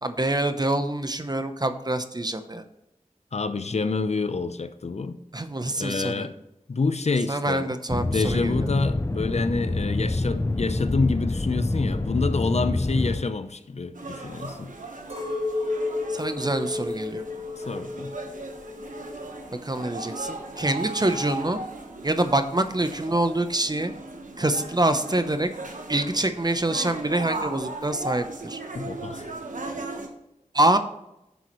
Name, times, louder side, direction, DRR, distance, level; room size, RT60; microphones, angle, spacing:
voice 1, 0.0-2.6 5.3-6.3 7.3-8.7 16.1-17.2 19.6-21.6 22.0-23.9 24.4-25.5 25.9-28.6 30.5-30.8, right 1 dB, 30° right, 9 dB, 0.8 m, -25 dB
voice 2, 3.3-5.2 5.8-6.4 6.7-7.6 8.0-14.7 17.6-18.1 28.7-29.3, left 4 dB, 60° left, 12 dB, 0.7 m, -27 dB
sound 1, 7.9-13.2, left 2 dB, 20° left, 0.5 m, -26 dB
sound 2, 13.9-30.1, right 2 dB, 85° right, 1.3 m, -38 dB
Chink clink, 15.1-19.5 19.7-20.5, left 3 dB, 55° right, 3.4 m, -32 dB
10.0 x 7.0 x 3.1 m, 0.87 s
wide cardioid pair, 45°, 13 cm